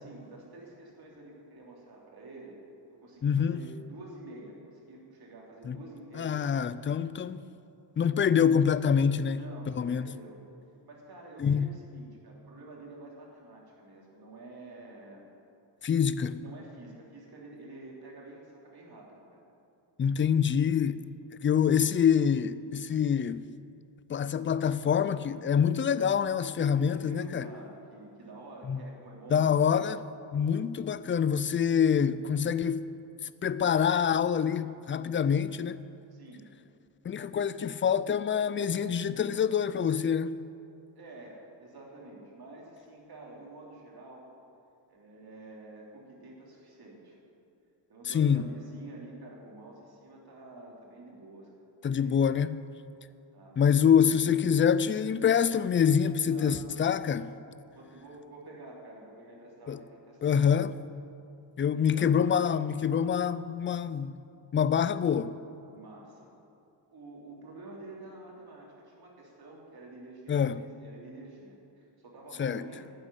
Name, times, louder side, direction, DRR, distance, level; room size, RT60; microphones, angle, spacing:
voice 1, 0.0-2.6 3.0-6.5 8.1-8.5 9.3-10.4 10.9-15.3 16.3-19.4 20.9-21.0 26.8-29.9 36.1-36.4 40.9-44.2 44.9-47.2 47.9-51.5 52.0-52.6 53.3-53.6 56.3-56.6 57.7-60.4 61.7-62.2 65.7-66.3 66.9-72.9, right 2 dB, 55° right, 3.2 m, -48 dB
voice 2, 3.2-3.6 5.7-5.8 6.2-7.4 8.0-10.1 11.4-11.7 15.8-16.4 20.0-21.0 21.4-23.5 24.1-27.4 28.7-28.8 29.3-30.0 30.3-32.9 33.2-35.8 37.0-40.4 48.1-48.4 51.8-52.6 53.6-57.3 59.7-59.8 60.2-60.7 61.6-64.1 64.5-65.4 70.3-70.6 72.4-72.7, left 7 dB, 30° left, 0.3 m, -26 dB
11.0 x 7.8 x 9.7 m
wide cardioid pair, 125°, 44 cm